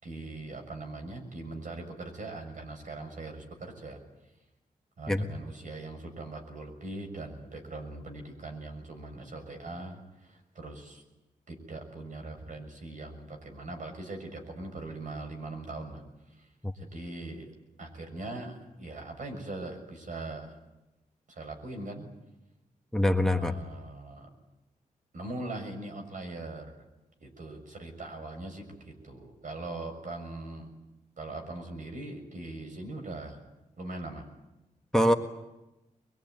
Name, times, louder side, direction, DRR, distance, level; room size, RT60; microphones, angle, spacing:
voice 1, 0.0-4.0 5.0-11.0 11.5-16.5 16.7-17.5 17.8-20.6 21.3-22.1 23.4-24.3 25.1-26.7 27.2-30.7 31.2-33.4 33.8-34.2, right 2 dB, 65° right, 4 dB, 6.6 m, -41 dB
voice 2, 22.9-23.5 34.9-35.1, left 1 dB, 5° left, 6 dB, 1.7 m, -24 dB
23.5 x 22.5 x 9.4 m, 0.98 s
cardioid pair, 85°, 14 cm